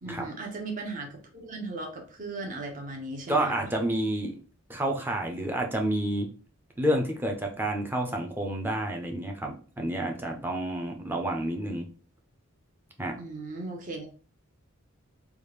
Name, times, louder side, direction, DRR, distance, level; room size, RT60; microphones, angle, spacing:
voice 1, 0.0-3.7 13.2-14.1, right 2 dB, 40° right, 1 dB, 0.8 m, -37 dB
voice 2, 3.3-4.4 4.7-6.3 6.8-11.9 13.0-13.1, right 1 dB, 10° right, 2 dB, 0.5 m, -29 dB
3.4 x 2.3 x 3.1 m, 0.38 s
head